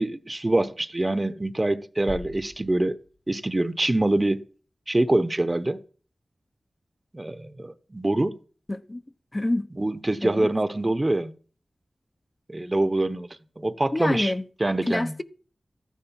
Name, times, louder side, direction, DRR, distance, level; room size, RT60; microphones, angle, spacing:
voice 1, 0.0-3.0 3.3-4.5 4.9-5.8 7.1-8.4 9.8-11.3 12.5-13.3 13.6-14.3 14.6-15.2, right 2 dB, 30° right, 1.0 m, -25 dB
sound 1, 2.1-3.9, left 3 dB, 85° left, 1.5 m, -43 dB
voice 2, 8.7-9.0 9.3-9.7 10.2-10.5 13.9-14.4 14.8-15.2, left 1 dB, 30° left, 0.9 m, -27 dB
14.0 x 10.0 x 5.9 m
wide cardioid pair, 55°, 0 cm